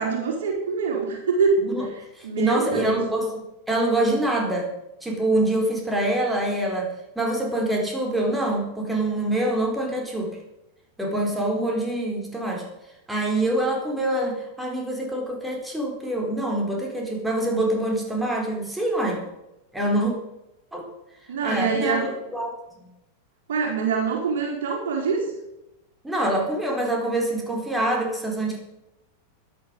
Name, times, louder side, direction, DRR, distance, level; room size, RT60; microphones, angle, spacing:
voice 1, 0.0-1.6 1.9-3.1 21.3-22.1 23.5-25.3, right 5 dB, 60° right, 1 dB, 4.3 m, -25 dB
voice 2, 2.2-4.7 5.0-10.4 11.0-12.6 13.1-19.2 19.7-20.1 20.7-20.9 21.4-22.5 26.0-28.6, right 1 dB, 5° right, 0 dB, 4.5 m, -25 dB
16.5 x 11.5 x 5.5 m, 0.89 s
figure-of-eight pair, 90°, 0 cm